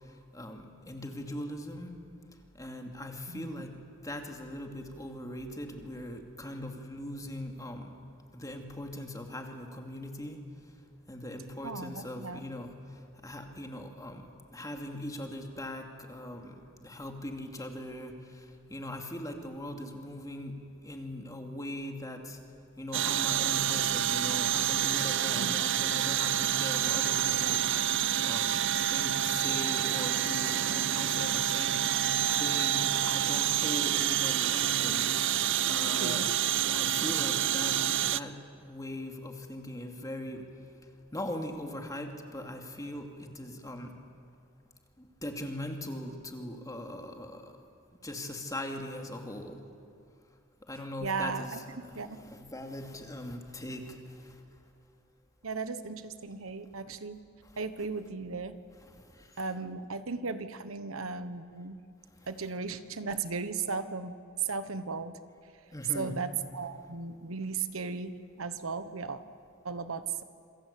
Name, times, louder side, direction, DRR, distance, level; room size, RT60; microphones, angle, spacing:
voice 1, 0.3-1.9 2.6-3.7 4.0-7.9 8.3-10.4 11.1-12.8 13.2-14.3 14.5-18.2 18.7-20.6 20.8-22.4 22.8-27.7 28.2-31.8 32.3-35.4 35.7-36.3 36.6-40.4 41.1-43.9 45.0-47.5 48.0-49.6 50.7-51.6 51.9-54.4 58.9-59.3 65.7-66.1, left 1 dB, 15° left, 3 dB, 2.6 m, -40 dB
voice 2, 3.3-3.6 11.6-12.4 25.3-25.6 35.9-36.3 51.0-52.2 55.4-57.2 57.6-58.6 59.4-61.8 62.3-65.2 65.9-69.2 69.6-70.2, right 4 dB, 85° right, 12 dB, 1.2 m, -36 dB
sound 1, 22.9-38.2, right 11 dB, 60° right, 0.6 m, -28 dB
28.0 x 22.5 x 8.5 m, 2.4 s
head